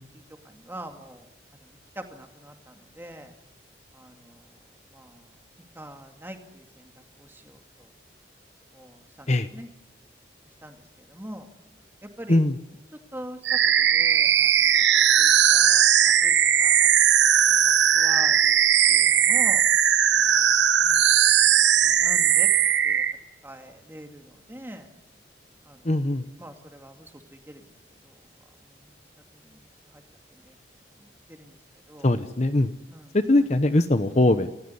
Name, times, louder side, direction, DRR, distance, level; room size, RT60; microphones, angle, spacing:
voice 1, 0.4-1.3 1.5-3.3 3.9-4.5 4.9-5.3 5.7-6.9 7.2-7.9 8.7-9.7 10.6-11.5 12.0-12.4 13.1-16.3 16.6-16.9 17.4-18.6 18.9-19.6 20.3-20.5 20.8-21.4 21.8-22.5 22.8-23.0 23.4-24.9 25.7-25.9 26.4-27.7 28.0-28.2 28.6-28.9 29.3-30.0 30.3-30.5 31.0-31.6 31.9-32.1 32.9-33.1 34.2-34.3, right 1 dB, 10° right, 4 dB, 2.3 m, -44 dB
sound 1, 13.4-23.1, right 9 dB, 80° right, 1.2 m, -19 dB
voice 2, 25.8-26.3 32.0-32.7 33.1-34.5, left 1 dB, 40° left, 11 dB, 0.9 m, -21 dB
29.0 x 15.0 x 9.8 m, 0.91 s
head